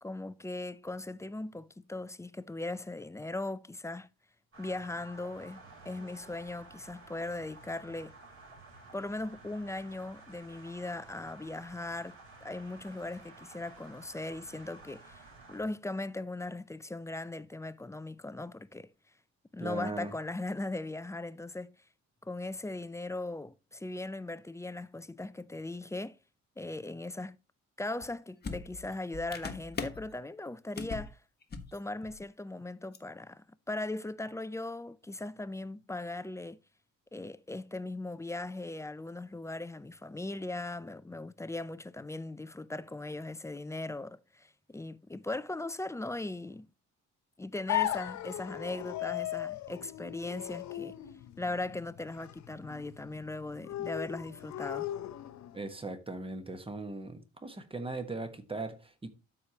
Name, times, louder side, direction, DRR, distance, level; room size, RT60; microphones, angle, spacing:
voice 1, 0.0-4.1 4.6-8.1 8.9-15.2 15.5-18.9 19.5-21.8 22.2-26.2 26.6-27.4 27.8-31.2 31.7-36.6 37.1-46.7 47.4-50.9 51.4-54.9, left 2 dB, 10° left, 0.4 m, -39 dB
sound 1, 4.5-15.6, right 3 dB, 45° right, 4.6 m, -53 dB
voice 2, 19.6-20.1 55.5-59.1, right 2 dB, 20° right, 1.4 m, -39 dB
sound 2, 28.0-28.1 28.4-30.1 30.8-31.1 31.4-32.2 32.9-33.0, left 4 dB, 35° left, 1.3 m, -40 dB
sound 3, 47.7-55.6, left 13 dB, 65° left, 0.8 m, -37 dB
12.5 x 4.9 x 2.9 m
cardioid pair, 90°, 30 cm